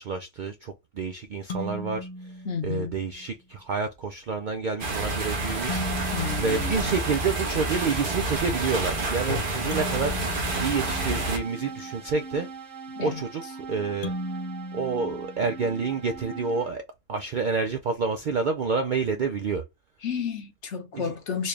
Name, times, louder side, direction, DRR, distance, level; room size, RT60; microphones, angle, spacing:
voice 1, 0.0-2.1 2.6-5.8 6.4-10.2 10.6-12.5 13.0-13.4 13.7-14.1 14.7-16.8 17.1-19.6 20.9-21.1, right 4 dB, 60° right, 0.5 m, -28 dB
sound 1, 1.5-3.2 5.7-7.7 9.7-11.8 14.0-16.1, equal, 45° left, 0.9 m, -38 dB
voice 2, 2.4-3.0 6.1-6.9 12.9-13.2 20.0-21.5, left 6 dB, 65° left, 1.2 m, -31 dB
sound 2, 4.8-11.4, right 2 dB, 45° right, 1.2 m, -28 dB
sound 3, 10.5-16.7, right 5 dB, 80° right, 1.7 m, -41 dB
4.3 x 2.3 x 3.2 m
omnidirectional pair, 1.3 m